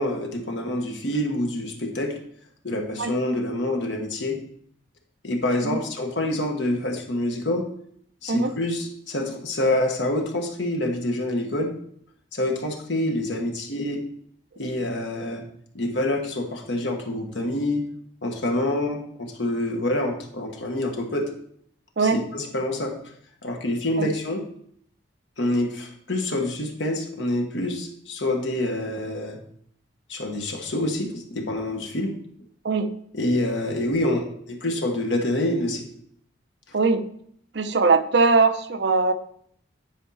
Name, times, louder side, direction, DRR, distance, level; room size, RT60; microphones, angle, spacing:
voice 1, 0.0-2.2 2.6-4.4 5.2-7.7 8.2-11.7 12.3-14.0 14.6-15.4 15.7-17.9 18.2-21.3 22.0-22.9 23.4-24.4 25.4-29.4 30.1-32.2 33.1-35.9, left 1 dB, 70° left, 2 dB, 1.4 m, -26 dB
voice 2, 37.5-39.1, right 4 dB, 60° right, 9 dB, 0.6 m, -21 dB
10.0 x 4.6 x 4.2 m, 0.65 s
head